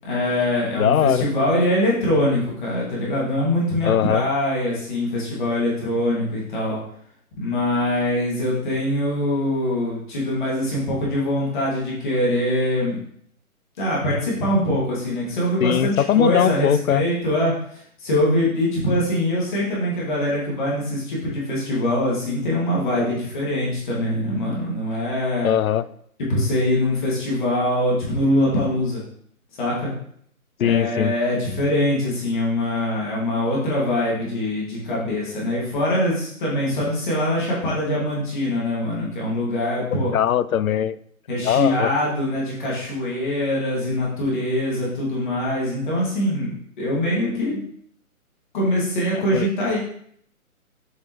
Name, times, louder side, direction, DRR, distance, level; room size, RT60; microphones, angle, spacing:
voice 1, 0.0-6.8 7.4-13.0 13.8-25.5 26.3-29.0 29.6-29.9 30.6-40.1 41.3-47.6 48.5-49.8, left 1 dB, 35° left, -5 dB, 2.4 m, -23 dB
voice 2, 0.8-1.3 3.8-4.2 15.6-17.1 25.4-25.8 30.6-31.1 40.1-41.0 41.4-41.9 49.3-49.5, left 10 dB, 70° left, 16 dB, 0.5 m, -20 dB
8.0 x 5.8 x 3.2 m, 0.66 s
hypercardioid pair, 165°, 43 cm